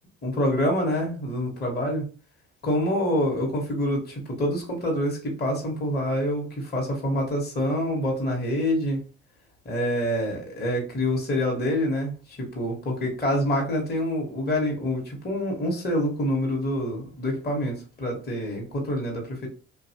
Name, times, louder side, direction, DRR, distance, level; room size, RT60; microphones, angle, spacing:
voice 1, 0.2-2.1 2.6-9.0 9.6-19.5, left 1 dB, 30° left, -1 dB, 1.1 m, -26 dB
2.7 x 2.3 x 2.8 m, 0.36 s
hypercardioid pair, 55°, 31 cm